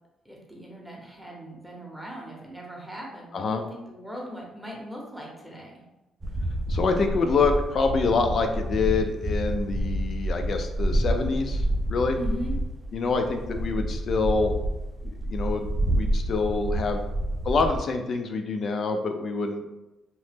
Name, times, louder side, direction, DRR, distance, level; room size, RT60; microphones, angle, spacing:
voice 1, 0.2-5.8 12.1-12.6, equal, ahead, -2 dB, 0.8 m, -39 dB
sound 1, 6.2-17.8, right 1 dB, 30° right, 0.4 m, -28 dB
voice 2, 6.7-11.6 11.9-12.2 12.9-14.5 15.0-17.0 17.4-19.6, left 4 dB, 55° left, 5 dB, 0.4 m, -26 dB
2.8 x 2.0 x 3.3 m, 0.99 s
cardioid pair, 90°, 0 cm